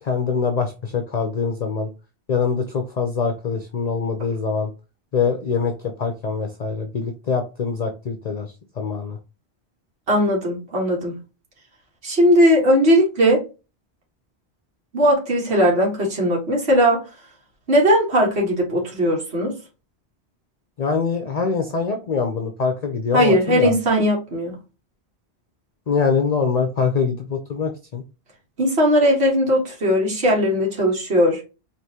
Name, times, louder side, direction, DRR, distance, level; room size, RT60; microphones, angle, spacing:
voice 1, 0.0-1.9 2.3-4.7 5.1-5.7 6.0-8.5 8.8-9.2 20.8-23.7 25.9-28.0, left 5 dB, 50° left, 0.6 m, -23 dB
voice 2, 10.1-11.1 12.0-13.4 14.9-17.0 17.7-19.5 23.1-24.5 28.6-31.4, equal, 75° right, 1.7 m, -18 dB
4.7 x 2.9 x 2.8 m
omnidirectional pair, 1.1 m